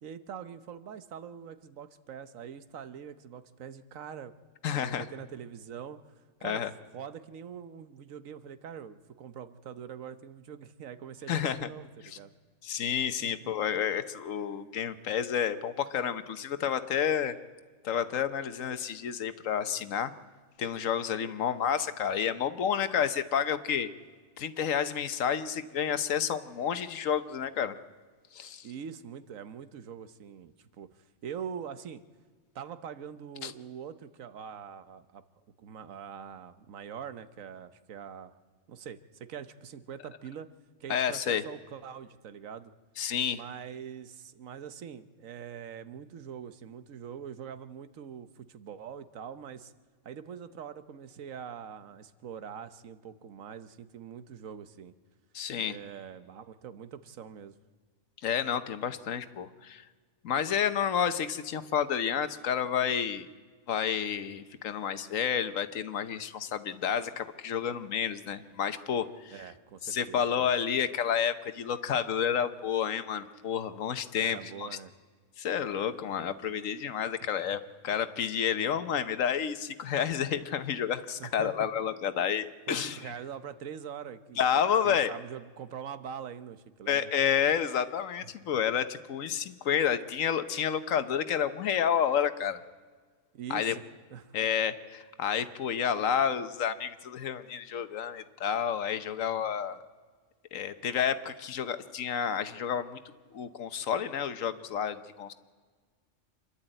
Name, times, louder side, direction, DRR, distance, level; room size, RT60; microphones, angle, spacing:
voice 1, 0.0-4.3 4.6-6.0 6.4-6.6 6.9-12.3 13.2-13.5 28.6-32.0 32.5-35.2 35.6-38.3 38.7-40.5 40.8-42.7 43.3-49.7 50.0-54.9 55.5-57.6 69.3-70.2 74.2-74.9 81.2-81.7 82.7-84.4 84.8-87.1 93.3-93.8 94.1-94.3, right 8 dB, 90° right, 12 dB, 1.3 m, -43 dB
voice 2, 4.6-5.1 6.4-6.7 11.3-11.7 12.0-12.2 12.6-17.3 17.8-20.1 20.6-23.9 24.4-27.7 28.3-28.7 33.4-33.5 40.9-41.4 43.0-43.4 55.3-55.8 58.2-59.8 60.2-63.3 63.7-69.3 69.8-74.7 75.4-83.0 84.4-85.1 86.9-92.6 93.5-93.7 94.3-99.8 100.5-103.0 103.3-105.3, left 8 dB, 80° left, 12 dB, 1.3 m, -30 dB
26.5 x 11.5 x 9.0 m, 1.5 s
omnidirectional pair, 1.3 m